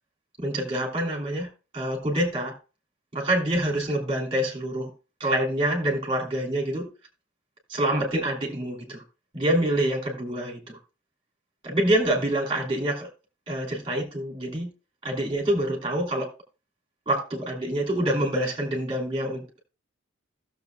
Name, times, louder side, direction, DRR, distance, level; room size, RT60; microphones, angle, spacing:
voice 1, 0.4-1.5 1.7-2.5 3.1-4.9 5.2-6.9 7.7-9.0 9.3-10.8 11.6-13.1 13.5-14.7 15.0-16.3 17.1-19.4, right 1 dB, 25° right, 2.9 m, -26 dB
16.0 x 7.0 x 2.3 m
head